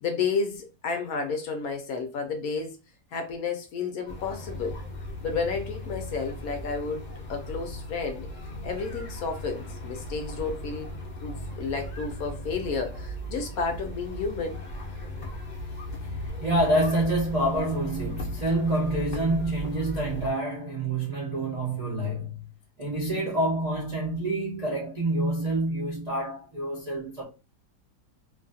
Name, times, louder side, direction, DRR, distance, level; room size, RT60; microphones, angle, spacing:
voice 1, 0.0-2.8 3.1-4.8 5.2-8.3 8.6-10.9 11.2-14.6, left 5 dB, 70° left, 0.9 m, -31 dB
sound 1, 4.1-20.3, equal, 40° left, 0.6 m, -37 dB
voice 2, 16.2-22.5 22.8-27.3, right 1 dB, 50° right, 0.4 m, -27 dB
2.8 x 2.3 x 2.6 m
omnidirectional pair, 1.8 m